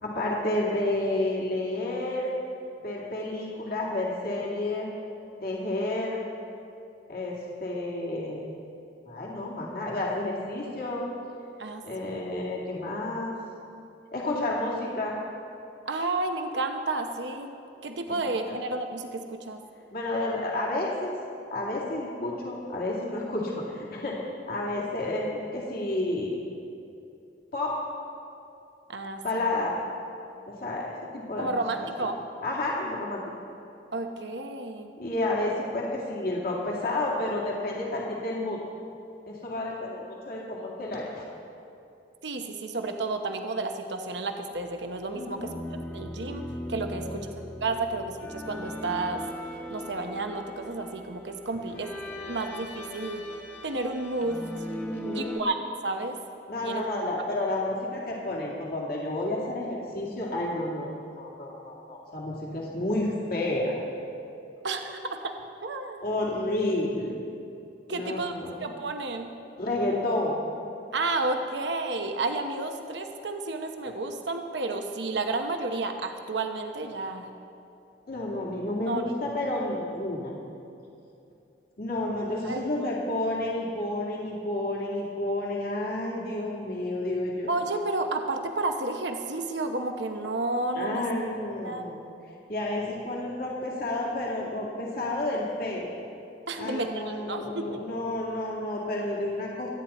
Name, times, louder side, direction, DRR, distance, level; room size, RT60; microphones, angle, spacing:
voice 1, 0.0-2.4 2.8-5.0 5.4-6.2 7.1-8.5 9.1-11.1 11.8-13.3 14.1-15.1 18.1-18.2 18.4-18.6 19.9-21.1 21.5-24.2 24.5-26.4 27.5-27.8 29.2-29.8 30.5-31.6 32.4-33.2 35.0-38.6 39.3-41.2 45.1-45.6 46.9-47.3 51.7-51.8 54.9-55.4 56.5-60.9 61.2-63.7 66.0-67.2 67.9-68.5 69.6-70.4 78.1-80.3 81.8-87.5 90.8-92.0 92.5-95.9 96.6-99.7, left 1 dB, 55° left, -4 dB, 2.3 m, -30 dB
voice 2, 11.6-12.2 15.9-17.5 17.8-19.6 28.9-29.6 31.4-32.2 33.9-34.9 42.2-45.5 45.9-46.4 46.7-47.3 47.6-49.2 49.7-51.9 52.3-53.2 53.6-54.4 55.1-56.2 56.6-56.9 64.6-65.3 65.6-66.0 67.9-68.3 68.6-69.3 70.9-77.3 78.9-79.1 82.4-82.7 87.5-91.0 91.6-91.9 96.5-97.8, right 2 dB, 70° right, 5 dB, 0.9 m, -31 dB
sound 1, 45.4-55.4, equal, 10° left, 1.2 m, -39 dB
25.5 x 9.6 x 4.3 m, 2.7 s
head